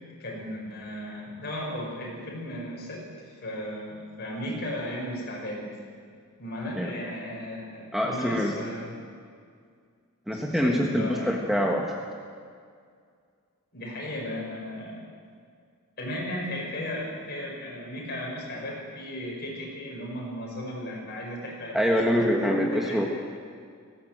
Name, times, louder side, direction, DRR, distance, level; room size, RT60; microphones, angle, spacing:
voice 1, 0.2-5.7 6.4-9.0 10.3-11.3 13.7-15.1 16.0-23.0, left 1 dB, 45° left, -2 dB, 6.4 m, -35 dB
voice 2, 7.9-8.5 10.3-12.1 21.7-23.1, equal, ahead, 0 dB, 1.4 m, -25 dB
19.5 x 17.0 x 7.8 m, 2.1 s
head